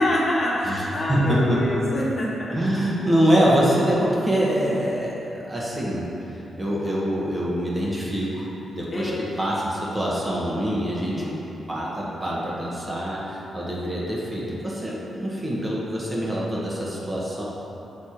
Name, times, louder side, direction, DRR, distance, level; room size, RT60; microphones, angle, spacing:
voice 1, 0.0-2.6 8.9-9.1 10.9-11.4, left 1 dB, 45° left, -5 dB, 1.2 m, -26 dB
voice 2, 1.1-1.9 2.5-11.3 11.7-17.4, equal, 25° right, -6 dB, 1.4 m, -25 dB
6.6 x 3.4 x 4.4 m, 2.9 s
cardioid pair, 70°, 0 cm